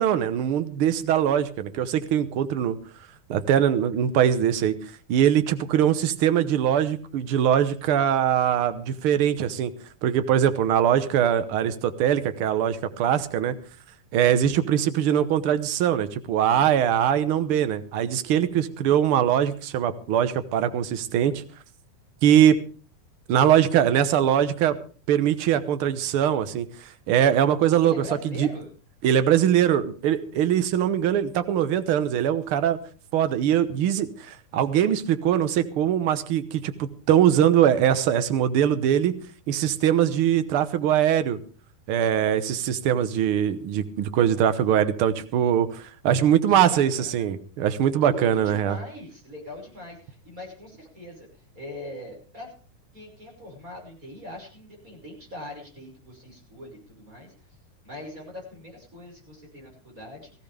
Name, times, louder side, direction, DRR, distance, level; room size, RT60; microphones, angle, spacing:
voice 1, 0.0-2.8 3.3-4.7 5.1-9.7 10.0-13.5 14.1-21.4 22.2-22.6 23.3-24.8 25.1-27.9 28.2-28.5 29.0-32.8 33.1-39.2 39.5-41.4 41.9-48.8, right 10 dB, 65° right, 11 dB, 1.4 m, -22 dB
voice 2, 27.7-28.7 42.8-43.0 46.5-47.3 48.0-52.5 52.9-57.3 57.8-60.3, left 1 dB, 25° right, -1 dB, 6.1 m, -41 dB
19.0 x 15.0 x 3.5 m, 0.38 s
omnidirectional pair, 3.6 m